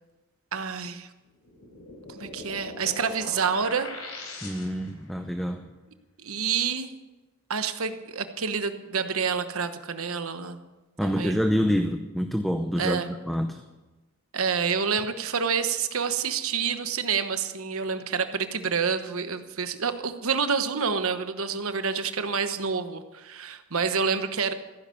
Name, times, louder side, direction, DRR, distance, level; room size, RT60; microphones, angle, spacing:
voice 1, 0.5-1.1 2.1-3.9 6.2-6.9 7.5-10.6 11.0-11.4 12.8-13.1 14.3-24.5, right 6 dB, 70° right, 9 dB, 1.1 m, -28 dB
sound 1, 1.4-5.0, left 3 dB, 80° left, 3.9 m, -40 dB
voice 2, 4.4-5.7 11.0-13.6, equal, ahead, 6 dB, 0.6 m, -27 dB
15.0 x 10.5 x 6.9 m, 1.1 s
head